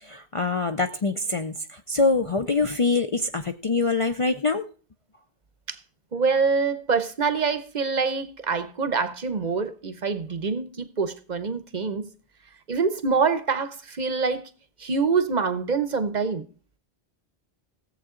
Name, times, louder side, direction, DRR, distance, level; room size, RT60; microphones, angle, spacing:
voice 1, 0.0-4.7, left 3 dB, 40° left, 0.5 m, -24 dB
voice 2, 6.1-12.1 12.7-14.4 14.8-16.4, right 5 dB, 45° right, 0.8 m, -25 dB
17.0 x 7.5 x 3.7 m
omnidirectional pair, 1.1 m